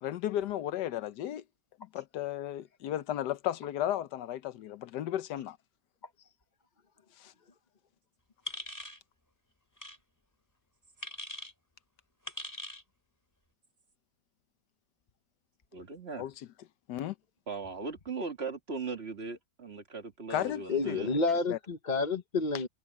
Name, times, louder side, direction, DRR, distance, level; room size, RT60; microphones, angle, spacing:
voice 1, 0.0-1.4 1.9-5.6 7.2-7.3 16.2-16.5 16.9-17.1 20.3-21.2 21.5-21.6 22.5-22.6, left 12 dB, 85° left, 1.4 m, -34 dB
sound 1, 8.5-9.0 9.8-10.0 11.0-11.5 12.3-12.8, left 1 dB, 10° left, 5.0 m, -41 dB
voice 2, 15.7-16.3 17.5-21.1, right 4 dB, 35° right, 2.3 m, -38 dB
voice 3, 20.7-22.7, left 3 dB, 30° left, 1.1 m, -29 dB
omnidirectional pair, 1.8 m